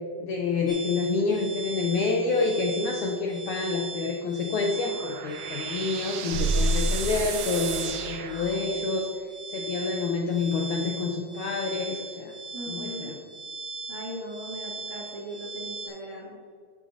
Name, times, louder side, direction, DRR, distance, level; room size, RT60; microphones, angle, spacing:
voice 1, 0.2-12.3 12.7-13.2, left 4 dB, 85° left, 1 dB, 1.7 m, -28 dB
sound 1, 0.7-15.9, right 3 dB, 20° left, 2.8 m, -39 dB
sound 2, 4.5-9.0, right 9 dB, 80° right, 2.6 m, -36 dB
sound 3, 6.3-8.7, right 1 dB, 65° left, 2.4 m, -29 dB
voice 2, 12.5-13.1 13.9-16.5, equal, 55° right, -6 dB, 0.8 m, -39 dB
14.0 x 9.1 x 2.8 m, 2.2 s
omnidirectional pair, 4.5 m